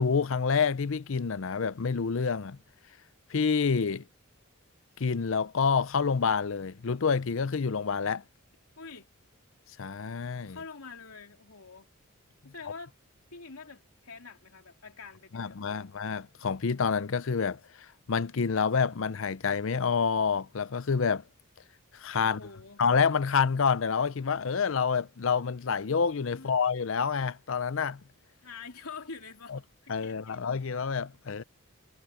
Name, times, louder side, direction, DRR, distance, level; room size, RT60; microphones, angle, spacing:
voice 1, 0.0-2.6 3.3-4.0 5.0-8.2 9.8-10.6 15.3-21.2 21.9-22.4 22.8-28.0 29.5-29.6 29.9-31.4, left 5 dB, 65° left, 0.6 m, -28 dB
voice 2, 8.8-9.1 10.4-11.9 12.4-12.9 13.3-16.0 22.2-22.8 26.3-26.6 28.4-30.4, left 4 dB, 85° left, 3.1 m, -46 dB
head